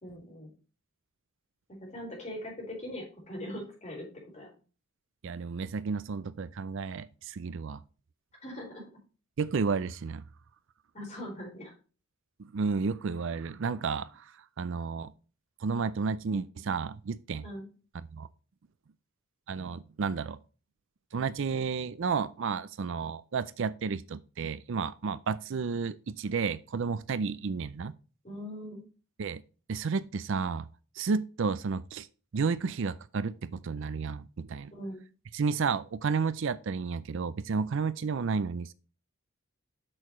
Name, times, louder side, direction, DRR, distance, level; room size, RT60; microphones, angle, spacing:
voice 1, 0.0-0.5 1.9-4.1 4.3-4.5 8.4-8.8 10.9-11.7 17.4-17.7 28.2-28.8 34.7-35.0, equal, 30° left, 4.4 m, -41 dB
voice 2, 5.2-7.8 9.4-10.2 12.5-14.2 14.6-15.1 15.6-17.4 18.1-18.3 19.5-20.4 21.1-27.9 29.2-29.4 29.7-30.7 31.0-32.1 32.3-34.7 35.3-38.7, right 5 dB, 55° right, 0.4 m, -32 dB
8.6 x 6.6 x 3.1 m
head